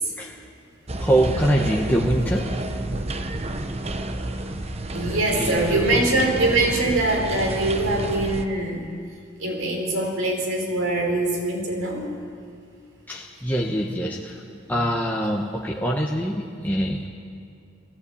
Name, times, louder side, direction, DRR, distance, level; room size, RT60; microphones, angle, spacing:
voice 1, 0.2-0.5 1.0-2.8 3.4-3.8 4.6-6.0 13.1-17.1, right 1 dB, 10° left, -2 dB, 1.2 m, -25 dB
sound 1, 0.9-8.5, right 1 dB, 30° right, 0.9 m, -30 dB
voice 2, 4.9-8.8 9.4-12.1, right 2 dB, 85° right, 0 dB, 4.7 m, -23 dB
19.0 x 16.0 x 8.6 m, 2.4 s
head